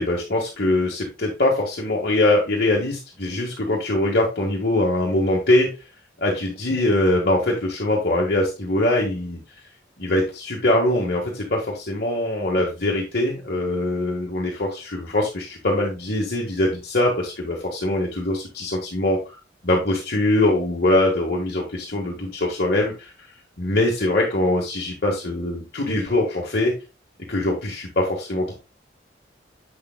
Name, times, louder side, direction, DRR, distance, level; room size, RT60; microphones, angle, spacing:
voice 1, 0.0-5.7 6.2-9.4 10.0-19.3 19.6-23.1 23.6-26.7 27.3-28.5, left 1 dB, 55° left, -2 dB, 1.5 m, -22 dB
7.9 x 6.7 x 2.3 m, 0.29 s
head